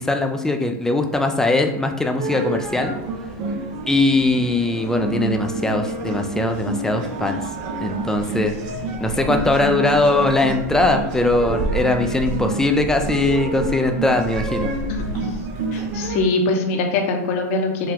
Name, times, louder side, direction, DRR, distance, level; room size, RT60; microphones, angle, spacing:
voice 1, 0.0-2.9 3.9-7.4 7.8-8.5 9.0-14.7, left 2 dB, 5° left, 5 dB, 0.4 m, -20 dB
sound 1, 2.2-16.2, right 2 dB, 50° right, 0.7 m, -28 dB
voice 2, 14.9-15.4 15.7-17.9, left 3 dB, 60° left, 3 dB, 0.9 m, -23 dB
4.7 x 2.3 x 3.5 m, 0.89 s
hypercardioid pair, 125°, 8 cm